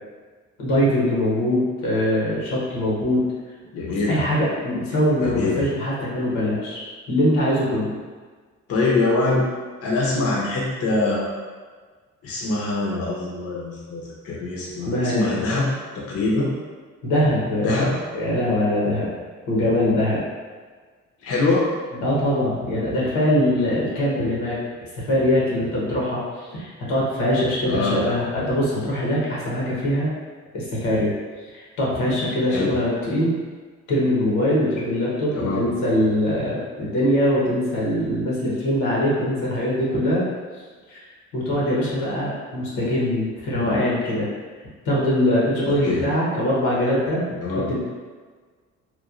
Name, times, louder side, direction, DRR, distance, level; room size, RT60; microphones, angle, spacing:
voice 1, 0.6-3.2 4.1-8.0 14.9-15.3 17.0-19.1 19.5-20.2 21.9-24.6 25.1-30.1 30.5-31.1 31.5-33.3 33.9-40.3 40.9-41.0 41.3-44.3 44.8-47.4 47.7-47.8, left 1 dB, 90° left, -6 dB, 1.0 m, -22 dB
voice 2, 3.7-4.2 5.2-5.6 8.7-9.4 9.8-11.2 12.2-15.7 15.9-16.5 17.6-17.9 21.2-21.7 27.7-28.0 32.5-32.8 35.3-35.7 45.6-46.0 47.4-47.7, left 3 dB, 55° left, -5 dB, 0.7 m, -24 dB
3.0 x 2.2 x 2.4 m, 1.5 s
cardioid pair, 90°, 30 cm